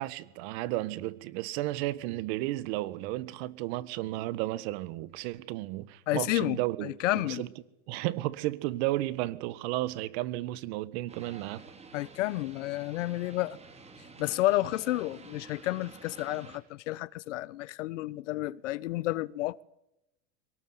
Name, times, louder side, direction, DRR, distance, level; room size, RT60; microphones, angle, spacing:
voice 1, 0.0-7.5 7.9-11.6, right 17 dB, 60° right, 1.7 m, -33 dB
voice 2, 6.1-7.4 11.9-13.6 14.2-19.6, left 17 dB, 75° left, 1.1 m, -31 dB
sound 1, 11.1-16.6, right 4 dB, 15° right, 3.9 m, -50 dB
23.0 x 19.0 x 9.7 m
supercardioid pair, 130°, 36 cm